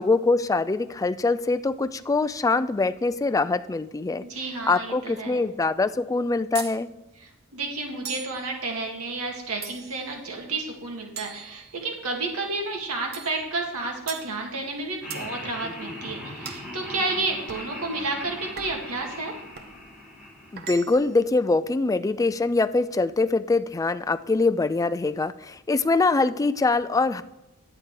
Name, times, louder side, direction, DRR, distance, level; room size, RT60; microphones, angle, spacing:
voice 1, 0.0-4.2 4.7-6.9 20.5-27.2, left 3 dB, 15° left, 11 dB, 0.3 m, -23 dB
voice 2, 4.3-5.4 7.2-19.3, right 3 dB, 80° right, 1 dB, 1.9 m, -31 dB
sound 1, 6.5-6.8 8.0-8.4 9.6-10.1 11.2-12.1 13.1-13.4 14.1-14.3 15.1-15.3 16.4-16.7 17.5-17.7 18.6-18.9 19.5-19.8 20.6-21.2, right 7 dB, 45° right, 0.7 m, -39 dB
Laughter, 15.0-21.2, left 1 dB, 5° right, 2.7 m, -39 dB
9.9 x 8.9 x 4.6 m, 0.94 s
head